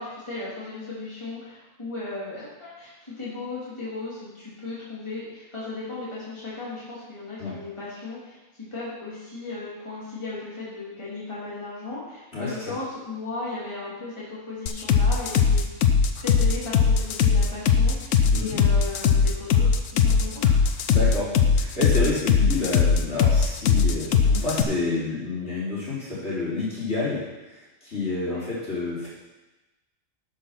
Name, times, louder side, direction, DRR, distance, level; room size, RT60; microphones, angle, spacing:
voice 1, 0.0-8.4 8.7-15.6 16.2-20.5 28.2-28.4, left 3 dB, 20° left, -9 dB, 3.0 m, -36 dB
voice 2, 12.3-12.7 18.3-18.7 20.9-29.1, left 3 dB, 55° left, -9 dB, 4.4 m, -29 dB
sound 1, 14.7-24.6, left 6 dB, 90° left, 1.2 m, -19 dB
11.0 x 6.4 x 5.8 m, 1.1 s
omnidirectional pair, 1.4 m